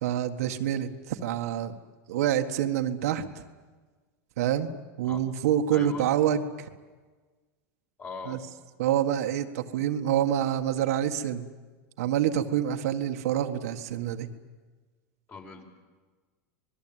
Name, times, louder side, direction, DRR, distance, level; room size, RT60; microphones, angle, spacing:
voice 1, 0.0-1.8 2.1-3.2 4.4-4.7 5.0-6.7 8.3-8.4 8.8-11.5 12.0-14.3, right 10 dB, 80° right, 5 dB, 1.8 m, -27 dB
voice 2, 5.7-6.0 8.0-8.4 15.3-15.6, left 4 dB, 25° left, 2 dB, 5.2 m, -40 dB
26.0 x 20.5 x 9.1 m, 1.3 s
supercardioid pair, 130°, 8 cm